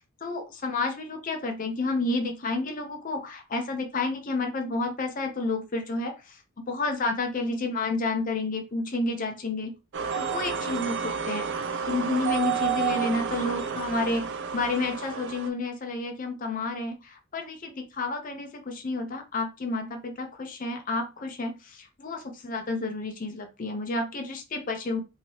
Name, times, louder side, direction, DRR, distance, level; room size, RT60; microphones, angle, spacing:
voice 1, 0.2-6.4 6.7-9.7 10.1-11.5 11.8-25.0, left 3 dB, 40° left, 4 dB, 0.6 m, -30 dB
sound 1, 9.9-15.5, right 7 dB, 55° right, 0.4 m, -30 dB
2.9 x 2.8 x 2.8 m, 0.28 s
head